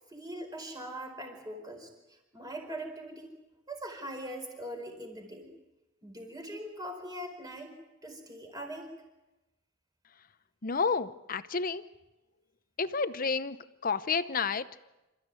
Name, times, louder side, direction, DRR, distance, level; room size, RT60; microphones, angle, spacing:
voice 1, 0.1-3.3 3.7-5.5 6.0-7.7 8.0-8.9, right 1 dB, 20° right, 3 dB, 4.7 m, -41 dB
voice 2, 10.6-11.8 12.8-13.6 13.8-14.7, left 5 dB, 40° left, 13 dB, 0.8 m, -30 dB
28.0 x 14.5 x 9.7 m, 1.0 s
head